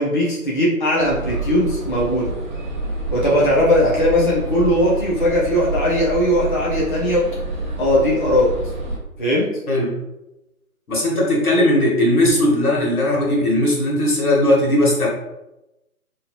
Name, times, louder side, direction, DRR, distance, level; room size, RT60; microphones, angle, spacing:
voice 1, 0.0-2.3 3.1-7.3 7.8-8.5 9.2-9.5, equal, 35° left, -6 dB, 0.6 m, -18 dB
sound 1, 1.0-9.0, right 2 dB, 35° right, 0.5 m, -28 dB
voice 2, 10.9-15.1, left 1 dB, 75° left, -3 dB, 1.2 m, -18 dB
2.8 x 2.4 x 2.8 m, 0.93 s
figure-of-eight pair, 145°, 44 cm